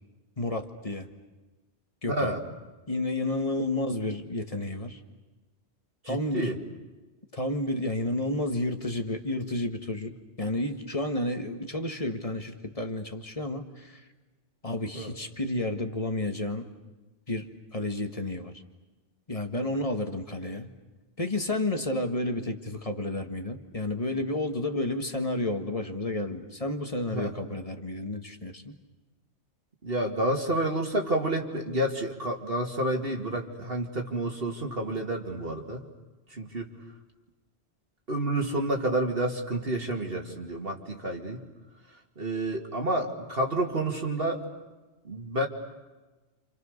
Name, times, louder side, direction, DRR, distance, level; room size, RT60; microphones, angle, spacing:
voice 1, 0.4-1.1 2.0-2.3 2.9-5.0 6.1-6.5 7.3-10.1 10.4-14.0 14.6-16.7 17.3-18.5 19.3-20.7 21.2-28.7, left 2 dB, 30° left, 6 dB, 1.8 m, -31 dB
voice 2, 2.1-2.4 6.0-6.6 14.9-15.1 27.1-27.3 29.8-35.8 36.3-36.7 38.1-41.4 42.2-44.4 45.0-45.5, right 1 dB, 55° right, 2 dB, 2.7 m, -29 dB
29.5 x 27.5 x 6.6 m, 1.2 s
omnidirectional pair, 1.2 m